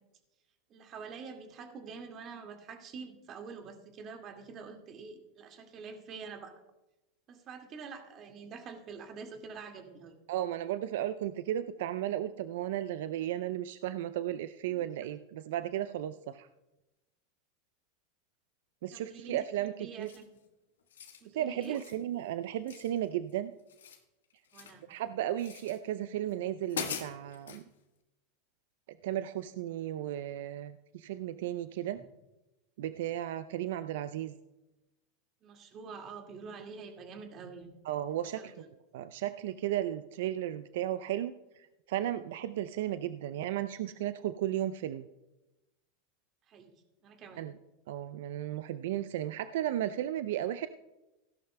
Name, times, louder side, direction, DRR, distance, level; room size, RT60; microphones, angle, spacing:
voice 1, 0.7-6.5 7.3-10.1 18.9-20.2 21.2-21.8 24.5-24.8 35.4-37.8 38.4-38.7 46.5-46.7 47.0-47.5, right 5 dB, 40° right, 4 dB, 2.0 m, -46 dB
voice 2, 10.3-16.5 18.8-20.1 21.3-23.5 24.9-27.6 29.0-32.0 32.8-34.3 37.8-38.5 38.9-45.1 47.4-47.5 47.9-50.7, right 12 dB, 70° right, 13 dB, 0.4 m, -34 dB
sound 1, 20.0-20.4 20.8-21.2 21.6-22.0 22.7-23.3 23.6-24.8 25.4-25.8 26.3-26.4 26.7-27.6, left 7 dB, 85° left, 1.4 m, -42 dB
17.0 x 11.5 x 2.2 m, 0.99 s
hypercardioid pair, 100°, 0 cm